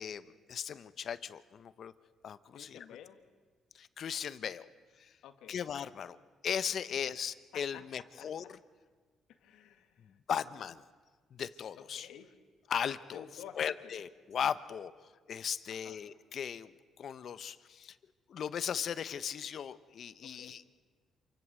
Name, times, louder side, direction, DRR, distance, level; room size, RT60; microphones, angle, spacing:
voice 1, 0.0-1.9 2.2-2.8 3.7-4.7 5.0-5.1 5.5-6.2 6.4-8.4 10.3-10.8 11.3-12.1 12.7-13.2 13.6-14.9 15.3-16.7 17.0-18.0 18.3-20.6, left 8 dB, 60° left, 14 dB, 1.0 m, -37 dB
voice 2, 2.5-3.2 5.2-5.6 6.9-7.0 7.5-8.3 9.3-10.2 11.5-12.3 13.1-13.9 15.7-16.0 20.2-20.6, left 9 dB, 85° left, 7 dB, 2.0 m, -52 dB
27.5 x 24.0 x 7.7 m, 1.5 s
cardioid pair, 90°, 0 cm